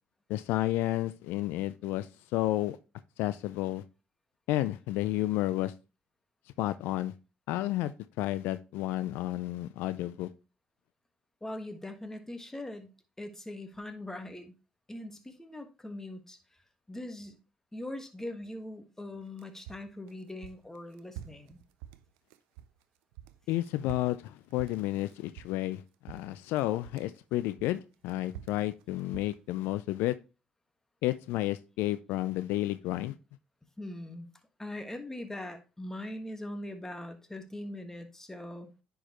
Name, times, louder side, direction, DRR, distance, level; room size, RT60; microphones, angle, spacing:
voice 1, 0.3-2.8 3.2-3.8 4.5-5.7 6.6-7.1 7.5-7.9 8.2-10.3 23.5-30.1 31.0-33.1, left 15 dB, 80° left, 0.4 m, -31 dB
voice 2, 11.4-12.9 13.2-14.5 14.9-16.4 16.9-17.4 17.7-21.6 33.8-34.3 34.6-38.7, left 1 dB, 10° left, 1.5 m, -41 dB
sound 1, 19.2-22.8 23.1-25.8 26.1-27.2 27.6-29.7, right 12 dB, 85° right, 0.4 m, -48 dB
9.9 x 4.7 x 3.0 m
supercardioid pair, 60°, 4 cm